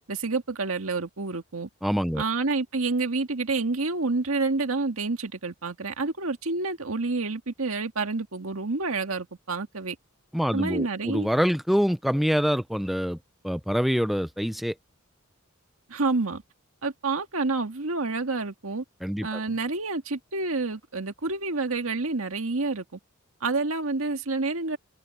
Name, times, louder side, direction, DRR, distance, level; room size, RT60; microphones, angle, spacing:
voice 1, 0.1-1.7 2.2-10.0 10.5-11.3 15.9-16.4 16.8-18.8 19.2-23.0 23.4-24.8, right 3 dB, 75° right, 1.8 m, -28 dB
voice 2, 1.8-2.2 10.3-13.2 13.4-14.7 19.0-19.4, equal, ahead, 0.4 m, -25 dB
head